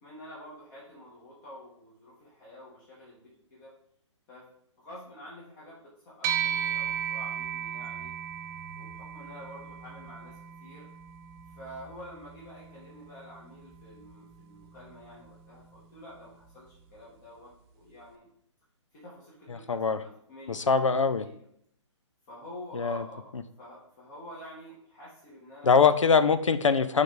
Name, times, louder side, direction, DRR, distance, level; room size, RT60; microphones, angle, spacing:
voice 1, 0.0-3.8 4.3-4.5 4.8-8.1 8.8-10.9 11.6-18.3 18.9-21.3 22.3-23.3 23.6-26.0, left 1 dB, 40° left, -6 dB, 2.3 m, -48 dB
sound 1, 6.2-15.8, right 9 dB, 25° right, 0.7 m, -37 dB
voice 2, 19.5-20.0 20.5-21.3 22.7-23.0 25.6-27.0, left 5 dB, 85° left, 12 dB, 0.6 m, -23 dB
7.7 x 3.7 x 4.9 m, 0.69 s
figure-of-eight pair, 135°, 16 cm